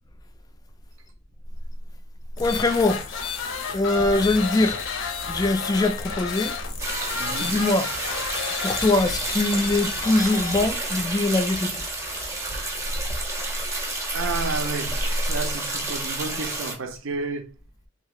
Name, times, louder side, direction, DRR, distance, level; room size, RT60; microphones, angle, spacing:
sound 1, 2.4-15.6, left 5 dB, 75° left, 0.5 m, -33 dB
voice 1, 2.4-3.0 3.7-4.8 5.3-6.5 7.4-7.9 8.6-11.7, left 2 dB, 20° left, 0.3 m, -22 dB
sound 2, 6.8-16.7, right 2 dB, 15° right, 0.7 m, -31 dB
voice 2, 7.2-7.5 14.1-17.5, right 4 dB, 85° right, 0.6 m, -31 dB
2.7 x 2.4 x 3.0 m
head